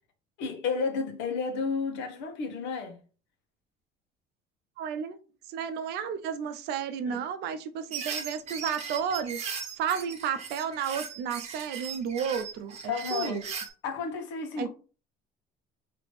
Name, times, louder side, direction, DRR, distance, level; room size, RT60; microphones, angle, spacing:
voice 1, 0.4-3.0 7.0-7.2 12.9-13.4 13.8-14.7, left 5 dB, 75° left, 1.1 m, -32 dB
voice 2, 4.8-5.2 5.5-9.4 9.8-13.5 14.6-14.7, right 7 dB, 65° right, 0.6 m, -32 dB
sound 1, 7.9-13.7, right 6 dB, 35° right, 0.9 m, -38 dB
4.9 x 2.9 x 3.2 m
cardioid pair, 150°, 18 cm